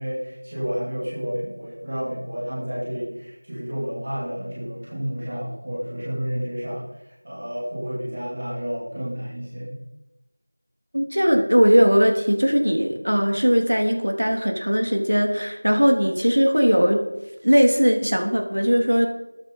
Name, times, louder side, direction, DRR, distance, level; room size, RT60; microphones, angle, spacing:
voice 1, 0.0-6.8 7.2-9.8, equal, 15° right, -8 dB, 2.8 m, -30 dB
voice 2, 10.9-17.0 17.4-19.1, equal, 70° right, 3 dB, 3.4 m, -19 dB
13.5 x 13.0 x 5.5 m, 0.97 s
figure-of-eight pair, 180°, 0 cm